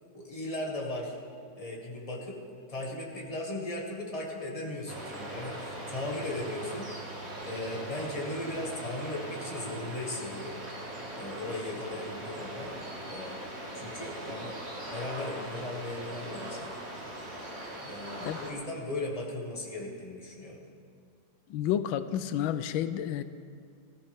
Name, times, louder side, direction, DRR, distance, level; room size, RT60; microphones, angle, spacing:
voice 1, 0.1-1.2 1.6-2.4 2.7-7.0 7.4-10.6 11.2-12.7 13.1-13.4 13.7-14.6 14.9-16.7 17.8-20.6, left 1 dB, 20° left, -2 dB, 1.9 m, -37 dB
sound 1, 4.9-18.5, right 1 dB, 35° right, 2.2 m, -40 dB
voice 2, 21.5-23.2, left 10 dB, 90° left, 12 dB, 1.4 m, -30 dB
19.0 x 14.5 x 3.6 m, 2.2 s
omnidirectional pair, 2.1 m